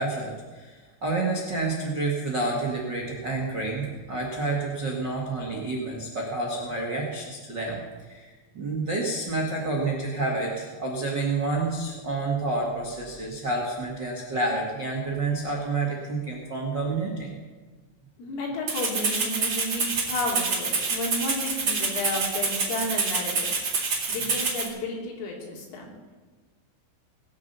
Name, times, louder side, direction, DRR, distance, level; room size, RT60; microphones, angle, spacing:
voice 1, 0.0-7.8 8.1-17.3, right 3 dB, 80° right, -2 dB, 1.0 m, -29 dB
voice 2, 18.2-23.7 24.1-26.0, left 2 dB, 90° left, -1 dB, 5.4 m, -32 dB
Rattle (instrument), 18.7-24.7, right 4 dB, 45° right, 1.8 m, -27 dB
19.0 x 8.5 x 6.9 m, 1.4 s
omnidirectional pair, 5.7 m